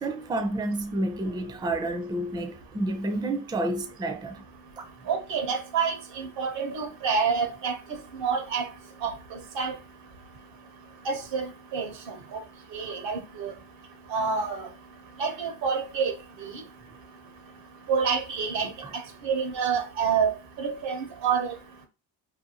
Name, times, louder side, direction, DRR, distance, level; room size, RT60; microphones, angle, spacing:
voice 1, 0.0-4.4 4.8-4.9 18.8-18.9, right 1 dB, 10° right, 0.4 m, -30 dB
voice 2, 5.1-7.8 8.1-8.7 9.0-9.7 11.0-12.4 12.7-13.5 14.1-14.7 15.2-16.1 16.4-16.5 17.9-18.7 19.2-20.3 20.6-21.5, right 6 dB, 75° right, 0.9 m, -28 dB
2.6 x 2.2 x 2.8 m
supercardioid pair, 65°, 44 cm